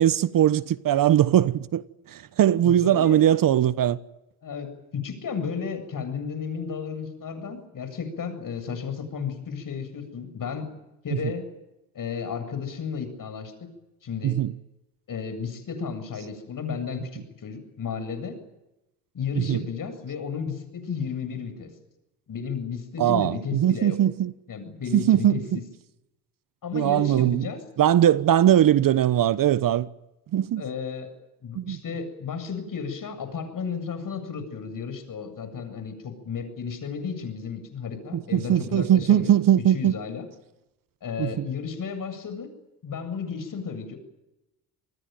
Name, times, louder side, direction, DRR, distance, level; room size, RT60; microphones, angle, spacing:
voice 1, 0.0-1.8 2.1-4.0 14.2-14.5 19.4-19.6 23.0-24.3 24.9-25.6 26.7-27.4 27.8-29.9 30.3-30.6 31.5-31.8 38.1-39.9 41.2-41.5, right 11 dB, 45° right, 1.2 m, -20 dB
voice 2, 2.6-3.2 4.4-10.7 11.0-11.5 11.9-13.5 14.0-14.4 15.1-18.4 19.1-21.8 22.3-24.0 24.5-25.6 26.6-27.6 30.6-31.1 31.4-40.3 41.0-42.5 42.8-44.0, left 6 dB, 45° left, 7.9 m, -33 dB
27.5 x 20.0 x 9.3 m
hypercardioid pair, 70°, 45 cm